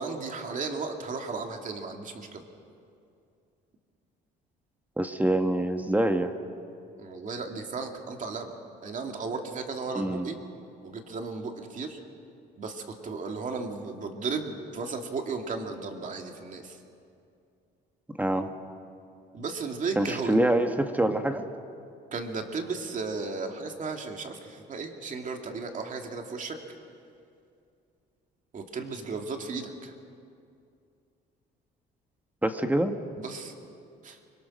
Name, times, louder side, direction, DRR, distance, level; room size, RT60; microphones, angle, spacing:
voice 1, 0.0-2.4 7.0-8.5 8.8-10.4 10.8-12.0 12.6-16.8 19.3-20.4 22.1-26.6 28.5-29.9 33.2-33.5 34.0-34.2, right 4 dB, 45° right, 3 dB, 2.6 m, -35 dB
voice 2, 5.0-6.3 9.9-10.3 18.2-18.5 20.0-21.4 32.4-33.0, right 1 dB, 10° right, 6 dB, 1.4 m, -25 dB
25.0 x 22.0 x 6.4 m, 2.5 s
cardioid pair, 100°, 19 cm